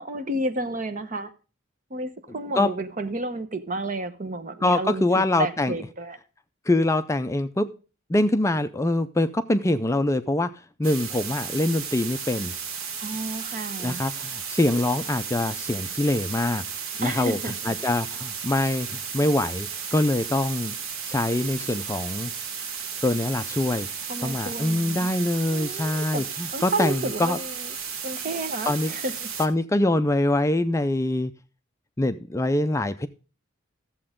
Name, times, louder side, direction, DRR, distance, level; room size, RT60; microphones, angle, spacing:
voice 1, 0.0-1.3 1.9-6.2 13.0-14.0 17.0-17.5 24.1-25.1 25.5-26.3 26.5-27.8 28.0-29.3, right 2 dB, 40° right, 1.0 m, -31 dB
voice 2, 4.6-5.7 6.7-7.7 8.1-10.5 10.8-12.5 13.8-16.6 17.0-17.4 17.7-20.7 21.1-22.3 23.0-23.9 24.2-27.4 28.7-28.9 29.4-31.3 32.0-33.1, left 1 dB, 15° left, 0.4 m, -24 dB
sound 1, 10.8-29.5, right 6 dB, 75° right, 1.3 m, -34 dB
14.0 x 7.7 x 3.6 m
head